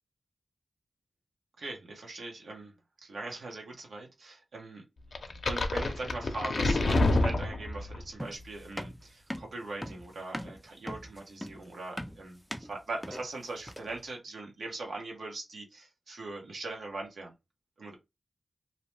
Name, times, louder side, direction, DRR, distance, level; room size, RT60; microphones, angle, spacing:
voice 1, 1.6-2.7 3.0-4.8 5.4-17.3 17.8-18.0, right 2 dB, 85° right, 0.9 m, -41 dB
sound 1, 5.2-8.0, left 2 dB, 70° left, 0.5 m, -27 dB
sound 2, 8.2-14.0, equal, ahead, 0.4 m, -41 dB
2.7 x 2.1 x 3.1 m
cardioid pair, 60°, 0 cm